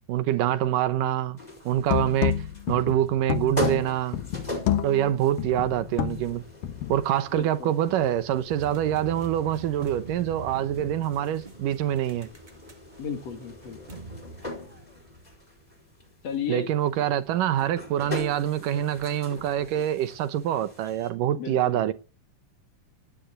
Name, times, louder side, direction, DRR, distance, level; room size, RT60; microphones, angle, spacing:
voice 1, 0.1-1.4 1.7-2.4 2.7-4.2 4.8-6.4 6.9-12.3 16.5-21.9, right 11 dB, 75° right, 2.6 m, -25 dB
sound 1, 1.4-21.1, left 2 dB, 10° left, 4.5 m, -41 dB
sound 2, 1.7-7.1, left 11 dB, 80° left, 2.9 m, -29 dB
voice 2, 7.3-7.7 8.0-8.1 13.0-13.8 16.2-16.7 21.3-21.9, left 7 dB, 50° left, 3.3 m, -34 dB
sound 3, 8.5-15.3, right 2 dB, 20° right, 1.2 m, -43 dB
17.5 x 9.7 x 8.1 m
omnidirectional pair, 4.0 m